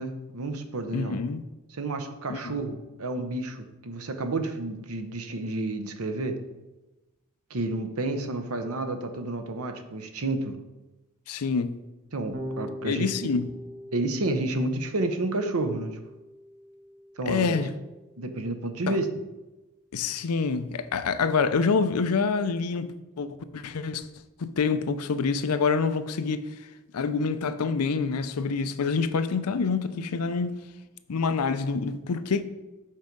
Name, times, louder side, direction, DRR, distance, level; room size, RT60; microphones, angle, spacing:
voice 1, 0.0-1.2 1.7-6.3 7.5-10.6 12.1-13.1 13.9-16.0 17.2-17.5 18.2-19.1, right 2 dB, 80° right, 0.9 m, -30 dB
voice 2, 0.9-1.4 2.3-2.6 11.3-11.8 12.8-13.5 17.3-17.7 18.9-19.0 19.9-24.1 24.4-26.4 26.9-30.6 31.1-32.4, left 5 dB, 90° left, 0.5 m, -27 dB
Electric guitar / Bass guitar, 12.3-18.7, equal, 60° right, 1.1 m, -43 dB
7.5 x 4.6 x 5.2 m
head